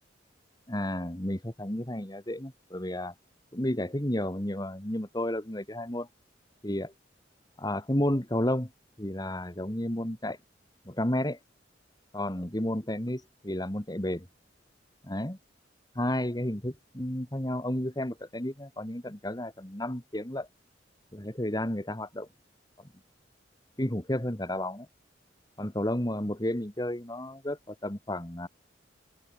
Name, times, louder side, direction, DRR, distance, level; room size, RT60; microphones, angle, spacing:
voice 1, 0.7-3.1 3.5-6.1 6.6-6.9 7.6-8.7 9.0-10.4 10.9-11.4 12.1-14.3 15.0-15.4 16.0-20.5 21.1-22.3 23.8-24.9 25.6-28.5, left 1 dB, 20° left, 2.3 m, -32 dB
open air
head